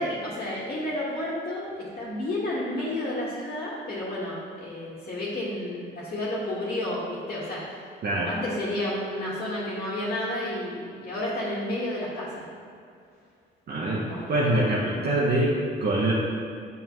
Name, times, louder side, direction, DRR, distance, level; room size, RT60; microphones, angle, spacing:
voice 1, 0.0-7.6 8.2-12.5 14.0-14.2, left 1 dB, 45° left, -9 dB, 1.7 m, -31 dB
voice 2, 13.7-16.1, right 1 dB, 55° right, -6 dB, 1.1 m, -24 dB
7.0 x 5.8 x 3.1 m, 2.3 s
cardioid pair, 90°, 20 cm